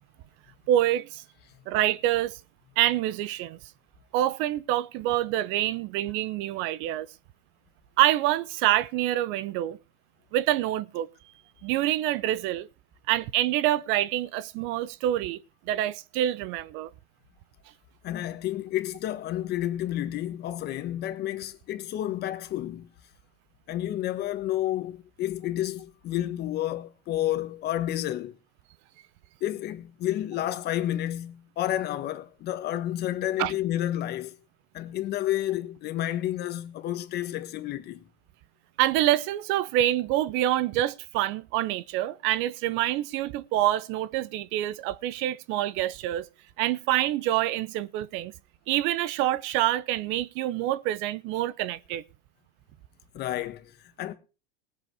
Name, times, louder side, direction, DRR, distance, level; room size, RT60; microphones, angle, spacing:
voice 1, 0.7-1.2 1.7-2.4 2.8-3.6 4.1-7.1 8.0-9.8 10.3-11.1 11.6-12.7 13.1-16.9 33.4-33.5 38.8-46.3 46.6-48.3 48.7-52.0, right 13 dB, 40° right, 0.7 m, -26 dB
voice 2, 18.0-22.9 23.7-28.3 29.4-34.3 34.7-38.0 53.1-54.1, left 13 dB, 30° left, 1.5 m, -30 dB
19.0 x 8.1 x 4.8 m
supercardioid pair, 145°, 31 cm